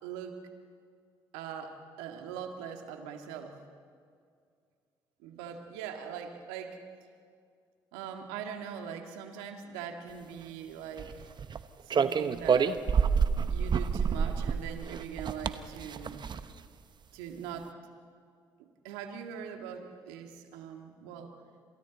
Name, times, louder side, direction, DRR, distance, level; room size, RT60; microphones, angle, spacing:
voice 1, 0.0-0.4 1.3-3.6 5.2-6.8 7.9-11.3 11.9-12.8 13.5-16.3 17.1-17.7 18.6-21.3, right 8 dB, 85° right, 4 dB, 2.0 m, -42 dB
sound 1, 11.0-11.6 11.9-16.6, right 6 dB, 50° right, 1.0 m, -28 dB
28.5 x 27.0 x 4.1 m, 2.2 s
hypercardioid pair, 50°, 10 cm